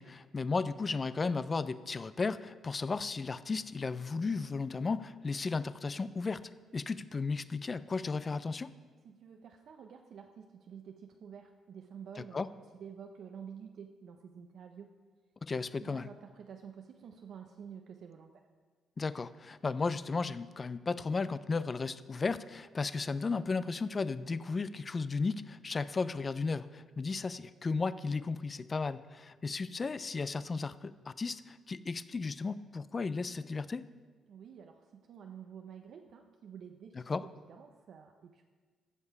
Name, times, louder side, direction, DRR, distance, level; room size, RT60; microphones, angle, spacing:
voice 1, 0.0-8.7 12.3-12.5 15.4-16.1 19.0-33.9 37.1-37.2, left 4 dB, 35° left, 16 dB, 0.4 m, -34 dB
voice 2, 9.0-12.4 12.8-14.9 15.8-18.4 34.3-38.5, right 7 dB, 65° right, 4 dB, 0.6 m, -50 dB
14.5 x 5.4 x 4.8 m, 1.4 s
cardioid pair, 90°, 0 cm